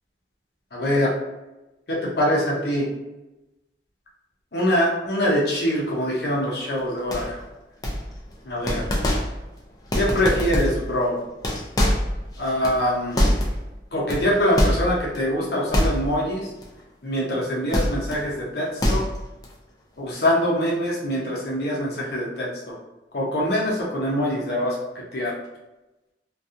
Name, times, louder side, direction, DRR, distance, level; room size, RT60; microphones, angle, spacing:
voice 1, 0.7-1.1 1.9-2.9 4.5-7.4 8.5-8.8 9.9-11.2 12.4-13.2 13.9-16.5 17.0-19.0 20.0-22.8 23.1-25.3, equal, 60° left, -3 dB, 0.6 m, -24 dB
sound 1, 7.1-7.4 7.8-8.3 8.6-9.5 9.9-10.9 11.3-13.7 14.1-15.2 15.7-16.3 16.6-16.8 17.7-18.2 18.6-19.4, equal, 20° left, 0.4 m, -24 dB
2.6 x 2.3 x 2.4 m, 1.0 s
head